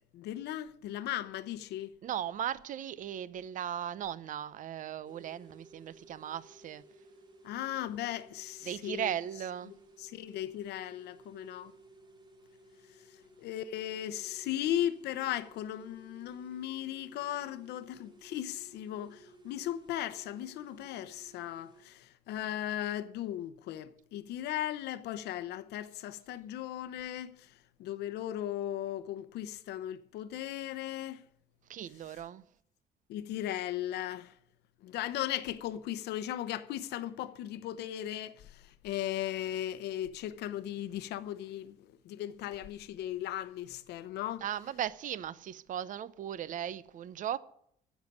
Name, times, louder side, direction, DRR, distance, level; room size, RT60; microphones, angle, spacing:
voice 1, 0.1-1.9 7.4-9.1 9.7-11.7 13.1-31.3 33.1-34.4 34.8-44.4, left 12 dB, 80° left, 0.8 m, -37 dB
voice 2, 2.0-6.8 8.6-9.7 31.7-32.4 44.4-47.4, right 10 dB, 50° right, 0.6 m, -37 dB
sound 1, 5.0-21.8, right 3 dB, 25° right, 2.3 m, -58 dB
10.0 x 7.3 x 9.5 m
cardioid pair, 110°, 17 cm